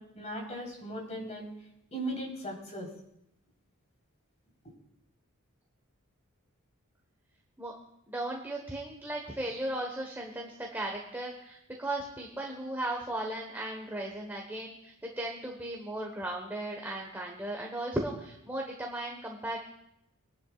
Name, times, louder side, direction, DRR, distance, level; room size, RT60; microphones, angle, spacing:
voice 1, 0.0-1.5 1.9-2.9, right 1 dB, 30° left, -1 dB, 4.2 m, -38 dB
voice 2, 8.1-19.6, right 1 dB, 10° right, 0 dB, 1.3 m, -36 dB
23.5 x 11.0 x 2.5 m, 0.79 s
head